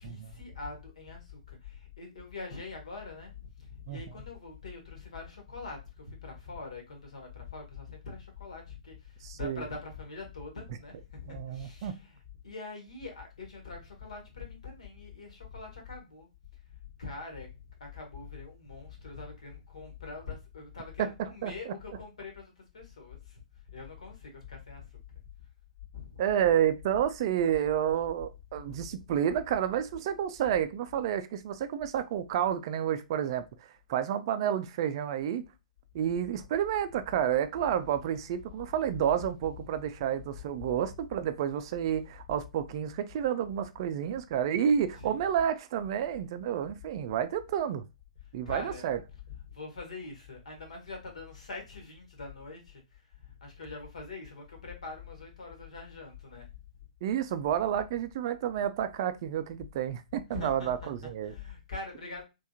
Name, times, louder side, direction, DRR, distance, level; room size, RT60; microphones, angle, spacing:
voice 1, 0.0-16.3 17.0-17.5 17.8-23.4 23.7-24.8 25.9-26.2 38.9-39.8 40.3-40.8 44.9-45.4 48.4-56.5 60.3-62.2, left 4 dB, 65° left, 1.6 m, -44 dB
voice 2, 9.2-9.6 11.3-11.9 21.0-21.1 21.4-21.5 26.2-33.4 33.9-35.4 35.9-47.8 48.3-49.0 57.0-61.3, right 9 dB, 40° right, 0.4 m, -30 dB
3.4 x 3.4 x 2.7 m
figure-of-eight pair, 115°, 4 cm